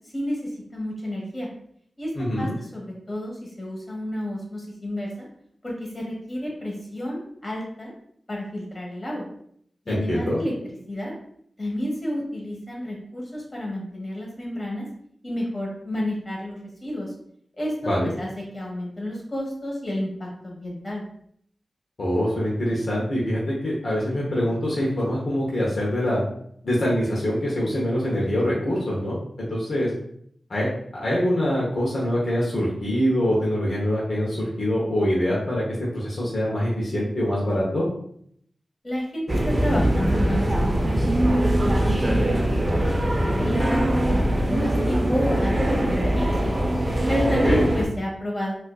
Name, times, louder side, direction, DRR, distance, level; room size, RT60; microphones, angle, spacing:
voice 1, 0.1-1.5 2.0-2.1 2.4-5.3 5.6-7.9 8.3-9.3 9.8-10.5 10.9-11.1 11.6-14.9 15.2-17.1 17.6-17.9 18.2-18.3 18.5-21.0 38.8-46.5 47.1-48.5, left 1 dB, 35° left, -3 dB, 1.3 m, -30 dB
voice 2, 2.1-2.5 9.9-10.4 17.8-18.1 22.0-26.2 26.6-29.9 30.5-35.6 35.9-37.9 47.4-47.7, equal, 60° left, -5 dB, 0.9 m, -24 dB
sound 1, 39.3-47.9, right 1 dB, 35° right, 0.5 m, -22 dB
4.2 x 2.4 x 2.3 m, 0.67 s
wide cardioid pair, 70°, 0 cm